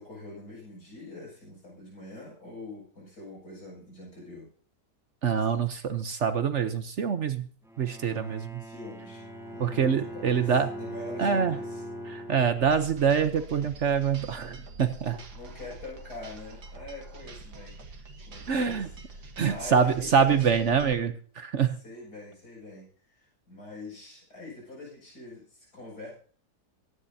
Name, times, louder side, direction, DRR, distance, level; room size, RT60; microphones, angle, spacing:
voice 1, 0.0-4.5 8.6-9.2 9.5-11.8 15.3-20.9 21.8-26.1, left 2 dB, 80° left, -3 dB, 7.5 m, -44 dB
voice 2, 5.2-7.5 7.8-8.6 9.6-10.7 11.2-11.6 12.1-15.2 18.5-18.9 19.4-21.8, right 6 dB, 55° right, 10 dB, 1.0 m, -25 dB
Bowed string instrument, 7.6-12.9, right 1 dB, 5° right, 0.5 m, -41 dB
Bowed string instrument 2, 9.0-13.8, left 3 dB, 20° left, 0.9 m, -48 dB
sound 1, 12.6-20.9, right 3 dB, 85° right, 1.9 m, -45 dB
23.5 x 10.5 x 2.8 m, 0.42 s
omnidirectional pair, 1.7 m